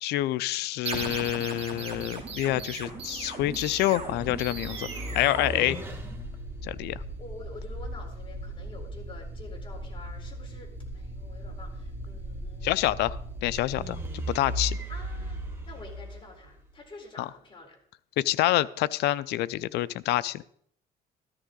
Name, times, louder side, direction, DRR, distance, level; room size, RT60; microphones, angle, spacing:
voice 1, 0.0-4.9 5.1-5.8 6.6-7.0 12.6-14.8 17.2-17.3 18.2-20.4, left 15 dB, 80° left, 17 dB, 0.5 m, -27 dB
sound 1, 0.8-16.8, right 1 dB, 15° right, 2.5 m, -38 dB
sound 2, 0.9-6.3, right 4 dB, 35° right, 3.1 m, -38 dB
voice 2, 6.8-13.0 14.9-17.8, left 2 dB, 30° left, 1 dB, 4.1 m, -48 dB
14.0 x 13.0 x 3.9 m, 0.66 s
cardioid pair, 110°, 17 cm